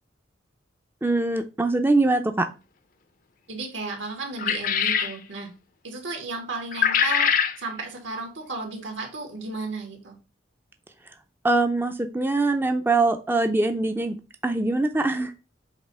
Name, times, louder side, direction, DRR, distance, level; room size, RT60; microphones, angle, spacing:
voice 1, 1.0-2.5 11.4-14.2 14.4-15.3, right 2 dB, 10° right, 6 dB, 0.5 m, -23 dB
voice 2, 3.5-5.5 5.8-10.2, right 3 dB, 85° right, 1 dB, 2.6 m, -34 dB
sound 1, 4.4-5.2 6.7-7.6, left 8 dB, 45° left, 0.5 m, -22 dB
7.9 x 2.9 x 5.5 m, 0.31 s
head